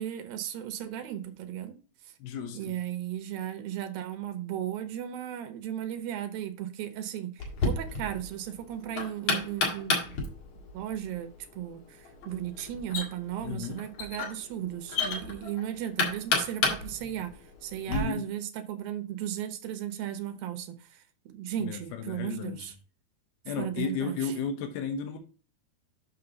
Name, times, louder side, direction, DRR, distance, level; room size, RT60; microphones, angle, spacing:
voice 1, 0.0-1.8 2.5-10.2 10.7-22.7 23.6-24.4, right 11 dB, 75° right, 2.6 m, -36 dB
voice 2, 2.2-2.8 13.4-13.8 17.9-18.2 21.6-22.7 23.5-25.2, left 6 dB, 90° left, 3.0 m, -33 dB
Knock, 7.4-18.0, left 4 dB, 55° left, 3.0 m, -33 dB
6.8 x 6.5 x 4.0 m
omnidirectional pair, 4.3 m